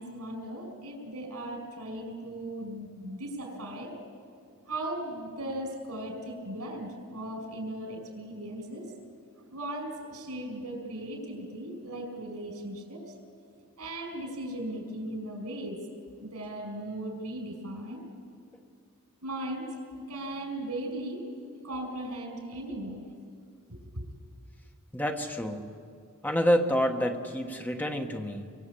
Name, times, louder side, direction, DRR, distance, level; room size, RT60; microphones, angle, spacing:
voice 1, 0.0-3.9 4.7-8.9 9.5-13.1 13.8-15.8 16.2-18.1 19.2-19.8 20.1-21.3 21.6-23.0 23.7-24.1, right 1 dB, 90° right, 4 dB, 5.7 m, -37 dB
voice 2, 24.9-25.8 26.2-28.5, equal, 10° left, 4 dB, 1.4 m, -28 dB
26.5 x 24.0 x 8.5 m, 2.2 s
head